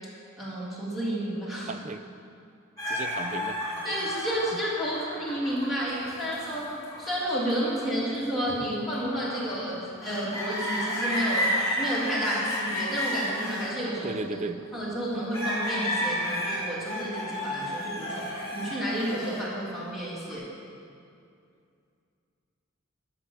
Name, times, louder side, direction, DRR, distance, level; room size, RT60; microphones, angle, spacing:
voice 1, 0.4-1.7 3.8-6.7 7.0-14.2 14.7-18.3 18.5-20.4, equal, ahead, -8 dB, 2.9 m, -31 dB
voice 2, 1.7-2.0 2.9-3.6 3.9-4.0 4.5-4.6 14.0-14.6, right 3 dB, 35° right, 10 dB, 0.5 m, -35 dB
sound 1, 2.8-14.8 15.3-20.3, equal, 15° left, 3.6 m, -32 dB
13.0 x 6.8 x 7.1 m, 2.5 s
head